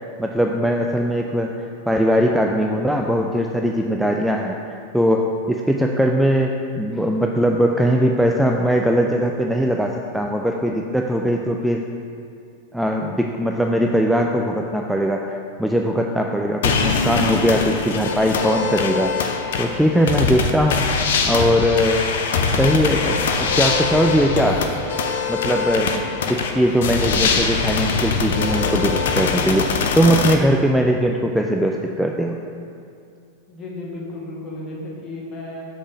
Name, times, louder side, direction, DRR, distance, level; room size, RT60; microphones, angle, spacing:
voice 1, 0.2-1.5 1.9-4.6 4.9-11.8 12.7-19.1 19.6-20.9 21.2-22.0 22.4-24.6 25.3-29.7 30.0-32.4, equal, ahead, 1 dB, 0.3 m, -20 dB
sound 1, 16.6-30.4, left 5 dB, 60° left, 0.5 m, -22 dB
voice 2, 33.5-35.6, left 2 dB, 30° left, -3 dB, 1.4 m, -33 dB
5.2 x 5.0 x 5.1 m, 2.4 s
figure-of-eight pair, 90°, 0 cm